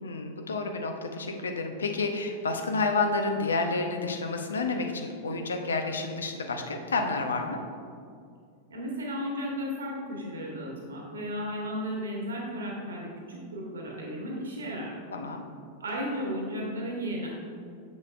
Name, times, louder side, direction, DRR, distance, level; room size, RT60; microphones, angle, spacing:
voice 1, 0.0-7.6 15.1-15.4, left 3 dB, 70° left, 4 dB, 0.6 m, -30 dB
voice 2, 8.7-14.9 15.8-17.3, equal, 70° right, -2 dB, 1.4 m, -34 dB
7.2 x 6.3 x 2.5 m, 2.3 s
figure-of-eight pair, 90°, 0 cm